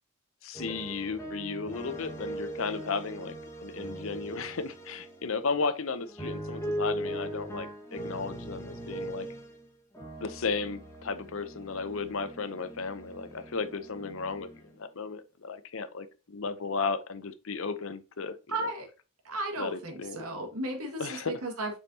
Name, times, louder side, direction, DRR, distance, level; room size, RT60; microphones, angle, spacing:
voice 1, 0.4-9.3 10.2-18.7 19.6-20.2 21.0-21.4, left 4 dB, 65° left, 0.7 m, -34 dB
sound 1, 0.5-5.5 6.0-9.7 9.9-14.8, right 1 dB, 15° left, 1.6 m, -40 dB
voice 2, 18.5-18.9 19.2-21.8, right 2 dB, 80° right, 2.0 m, -35 dB
7.2 x 5.5 x 2.8 m
head